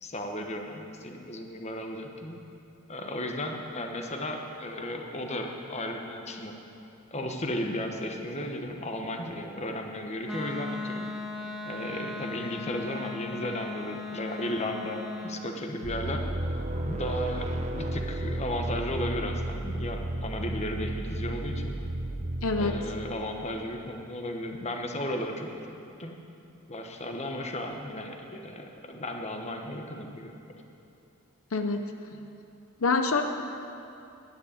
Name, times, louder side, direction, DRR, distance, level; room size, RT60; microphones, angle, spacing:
voice 1, 0.0-2.4 2.9-6.5 7.1-11.2 11.7-16.2 16.5-16.6 16.8-21.8 22.6-26.1 26.7-30.3, left 1 dB, 30° left, 3 dB, 1.1 m, -35 dB
Wind instrument woodwind instrument, 10.3-15.4, left 2 dB, ahead, 0.9 m, -37 dB
sound 1, 15.8-23.3, right 1 dB, 30° right, 0.8 m, -33 dB
voice 2, 22.4-22.8 31.5-31.8 32.1-32.2 32.8-33.2, left 4 dB, 75° left, 6 dB, 0.7 m, -26 dB
11.0 x 9.7 x 8.7 m, 2.7 s
head